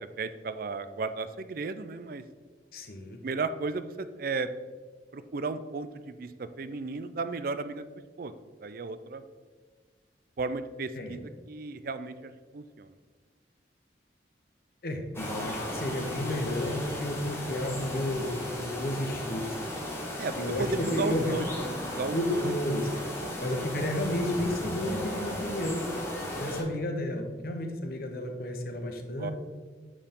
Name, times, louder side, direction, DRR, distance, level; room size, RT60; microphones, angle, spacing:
voice 1, 0.2-2.2 3.2-4.5 5.1-7.9 8.2-8.3 8.6-9.2 10.4-11.2 11.5-12.9 20.2-21.4 21.8-22.5 23.2-23.7 29.2-29.3, right 3 dB, 55° right, 12 dB, 0.4 m, -34 dB
voice 2, 2.7-3.2 11.0-11.2 14.8-19.5 20.4-21.4 22.1-22.9 23.4-25.9 26.4-29.3, left 1 dB, 55° left, 4 dB, 0.9 m, -32 dB
sound 1, 15.1-26.6, left 1 dB, 15° left, 1.4 m, -36 dB
8.8 x 4.6 x 3.7 m, 1.5 s
head